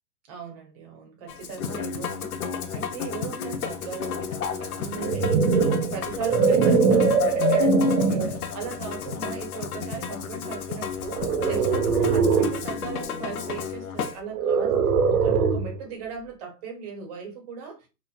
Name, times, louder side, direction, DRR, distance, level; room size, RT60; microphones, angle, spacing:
voice 1, 0.3-17.9, right 6 dB, 25° right, 0.6 m, -38 dB
Musical instrument, 1.3-14.2, left 6 dB, 65° left, 0.6 m, -31 dB
sound 1, 4.8-8.4 9.1-9.3 11.1-12.6 14.3-15.8, right 5 dB, 70° right, 0.6 m, -22 dB
2.9 x 2.0 x 2.4 m
hypercardioid pair, 135°, 48 cm